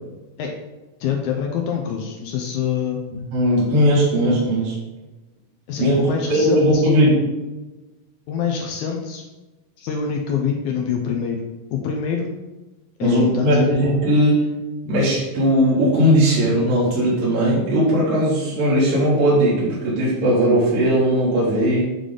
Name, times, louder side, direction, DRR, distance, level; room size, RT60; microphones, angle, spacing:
voice 1, 1.0-3.0 5.7-6.9 8.3-9.2 9.8-11.4 11.7-12.3 13.0-13.8, left 7 dB, 80° left, 2 dB, 1.8 m, -25 dB
voice 2, 3.3-4.7 5.8-6.0 6.3-7.2 13.0-14.5 14.9-21.9, equal, 75° right, -7 dB, 3.4 m, -18 dB
8.2 x 3.4 x 3.8 m, 1.1 s
omnidirectional pair, 4.0 m